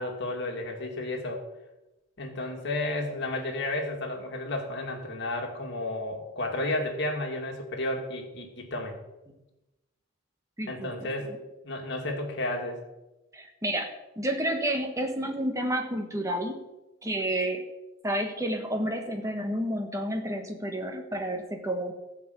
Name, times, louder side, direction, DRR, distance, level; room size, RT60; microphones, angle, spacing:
voice 1, 0.0-1.4 2.2-9.0 10.7-11.3 11.6-12.8, left 2 dB, 55° left, 2 dB, 2.2 m, -32 dB
voice 2, 10.6-11.1 13.3-16.7 17.0-17.6 18.0-21.9, right 1 dB, 15° right, 3 dB, 1.4 m, -30 dB
13.5 x 5.1 x 8.2 m, 1.0 s
head